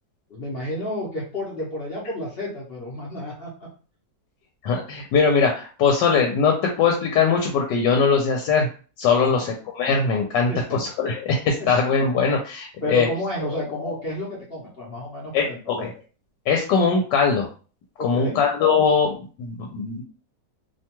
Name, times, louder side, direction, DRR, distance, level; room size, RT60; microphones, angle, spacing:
voice 1, 0.3-3.7 9.2-9.4 10.5-10.8 11.6-11.7 12.8-15.9 18.0-18.4, left 1 dB, 50° left, -4 dB, 0.8 m, -31 dB
voice 2, 4.6-8.7 9.0-13.1 15.3-15.9 16.5-17.5 18.0-20.0, left 5 dB, 85° left, 1 dB, 1.3 m, -21 dB
3.0 x 2.2 x 2.9 m, 0.37 s
omnidirectional pair, 1.9 m